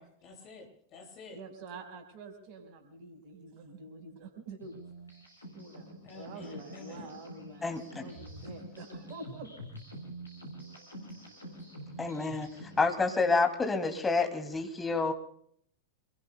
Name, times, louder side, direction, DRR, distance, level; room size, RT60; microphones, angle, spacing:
voice 1, 0.0-1.4 6.0-7.1, left 3 dB, 35° left, 1 dB, 7.9 m, -49 dB
voice 2, 1.3-4.7 5.5-9.6, right 3 dB, 45° right, 4 dB, 4.9 m, -47 dB
sound 1, 4.6-12.9, right 1 dB, 80° left, 6.8 m, -47 dB
voice 3, 7.6-8.0 12.0-12.5 12.8-15.1, left 3 dB, 15° left, 5 dB, 2.7 m, -28 dB
28.5 x 21.5 x 2.3 m, 0.63 s
figure-of-eight pair, 90°, 0 cm